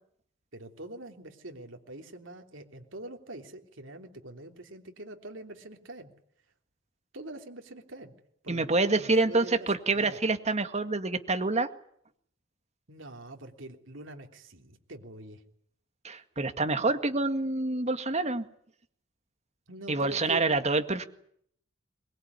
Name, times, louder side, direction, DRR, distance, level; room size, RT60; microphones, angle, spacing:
voice 1, 0.5-6.1 7.1-8.1 8.4-9.7 9.9-10.2 12.9-15.4 19.7-20.4, right 1 dB, 70° right, 4 dB, 3.3 m, -44 dB
voice 2, 8.5-11.7 16.0-18.5 19.9-21.1, right 3 dB, 35° right, 8 dB, 2.0 m, -27 dB
22.5 x 22.0 x 9.7 m, 0.67 s
head